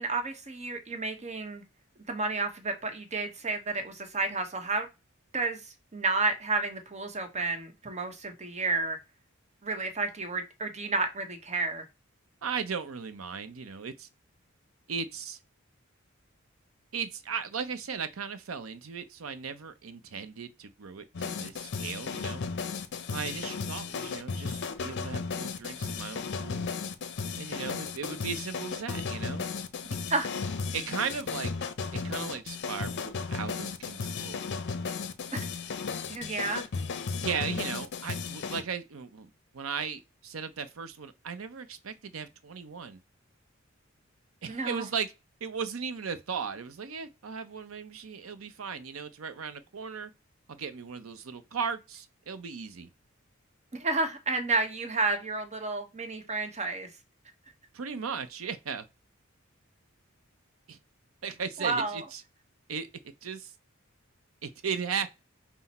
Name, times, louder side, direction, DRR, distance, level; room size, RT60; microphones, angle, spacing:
voice 1, 0.0-1.6 2.1-4.9 5.3-5.6 5.9-9.0 9.6-11.8 30.1-30.3 35.3-35.5 36.1-36.7 44.5-44.8 53.8-56.9 61.6-62.0, right 3 dB, 35° right, 0.9 m, -31 dB
voice 2, 12.4-14.1 14.9-15.4 16.9-22.4 23.1-26.7 27.4-29.4 30.7-31.5 31.9-34.4 37.2-43.0 44.4-45.1 45.4-50.1 50.5-52.9 57.7-58.9 60.7-60.8 61.2-62.2 62.7-62.9 63.2-63.5 64.4-65.2, right 6 dB, 80° right, 0.6 m, -37 dB
sound 1, 21.1-38.6, left 5 dB, 55° left, 0.6 m, -35 dB
5.8 x 2.1 x 4.1 m
head